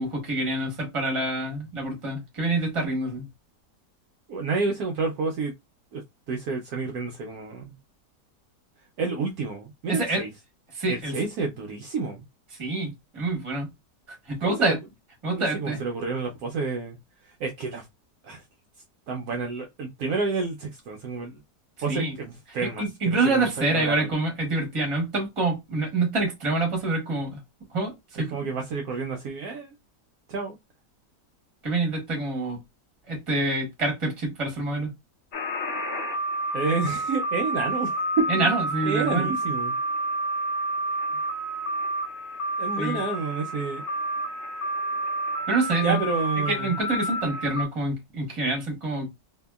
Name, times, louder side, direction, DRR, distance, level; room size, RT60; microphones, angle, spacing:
voice 1, 0.0-3.3 9.9-10.2 10.7-11.1 12.6-13.7 14.1-14.8 15.2-15.8 21.9-22.1 22.8-27.4 27.7-28.5 31.6-32.6 33.1-34.9 38.3-39.4 42.8-43.0 45.5-46.0 46.5-49.1, right 2 dB, 20° right, 1.1 m, -26 dB
voice 2, 4.3-5.5 5.9-6.0 6.3-7.8 9.0-10.3 10.9-12.2 14.4-14.8 15.3-17.0 17.4-17.9 18.2-18.4 19.1-21.4 21.8-24.1 28.2-29.7 30.3-30.6 36.5-38.6 38.8-39.8 42.6-43.8 45.8-46.8, right 4 dB, 70° right, 1.0 m, -29 dB
sound 1, 35.3-47.6, right 1 dB, 55° left, 0.5 m, -29 dB
2.8 x 2.6 x 2.2 m
omnidirectional pair, 1.8 m